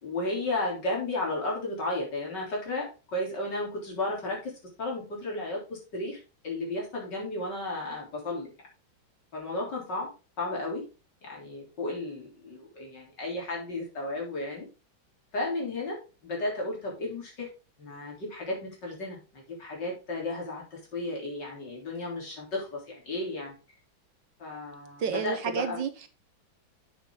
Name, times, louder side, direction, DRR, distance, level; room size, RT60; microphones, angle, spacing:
voice 1, 0.0-8.5 9.3-10.1 10.4-10.8 11.2-14.7 15.3-16.0 16.2-17.5 17.8-23.5 24.4-25.8, left 2 dB, 60° left, -2 dB, 4.3 m, -34 dB
voice 2, 25.0-26.1, right 6 dB, 65° right, 9 dB, 1.6 m, -31 dB
8.1 x 7.5 x 3.8 m, 0.31 s
omnidirectional pair, 2.2 m